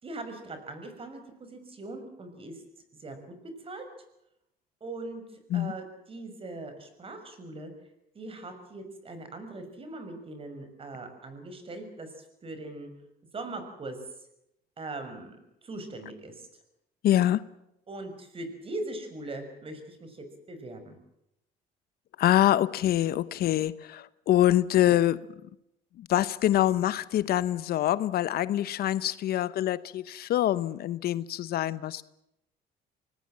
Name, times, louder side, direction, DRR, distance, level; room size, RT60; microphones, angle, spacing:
voice 1, 0.0-2.6 3.0-3.4 3.6-3.9 4.8-7.7 8.1-12.9 13.3-14.0 14.8-15.4 15.6-16.5 17.9-21.0, right 2 dB, 35° right, 6.1 m, -40 dB
voice 2, 17.0-17.5 22.2-25.3 26.0-32.0, left 13 dB, 65° left, 0.9 m, -25 dB
25.0 x 19.5 x 7.5 m
cardioid pair, 110°, 17 cm